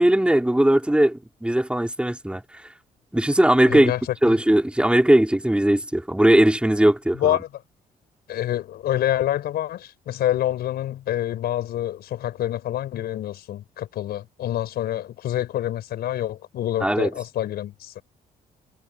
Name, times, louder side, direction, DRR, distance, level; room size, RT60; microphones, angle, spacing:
voice 1, 0.0-2.4 3.1-3.9 4.2-7.4 16.8-17.1, right 1 dB, 5° right, 4.7 m, -19 dB
voice 2, 3.7-4.0 4.3-4.4 7.2-7.5 8.3-18.0, left 12 dB, 75° left, 5.2 m, -27 dB
supercardioid pair, 75°, 17 cm